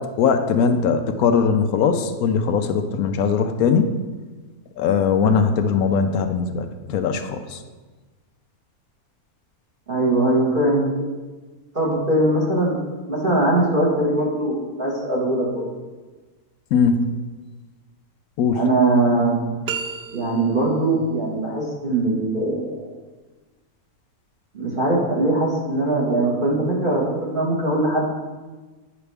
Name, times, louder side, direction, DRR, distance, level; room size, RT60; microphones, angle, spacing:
voice 1, 0.2-4.0 4.8-7.6 16.7-17.1 18.4-18.7, left 6 dB, 80° left, 8 dB, 1.1 m, -20 dB
voice 2, 9.9-11.1 11.7-12.8 13.1-15.7 18.5-19.5 20.1-22.9 24.5-28.1, right 2 dB, 35° right, -4 dB, 1.8 m, -21 dB
sound 1, 19.7-20.8, right 6 dB, 70° right, 0.4 m, -31 dB
9.6 x 5.0 x 3.4 m, 1.3 s
omnidirectional pair, 1.5 m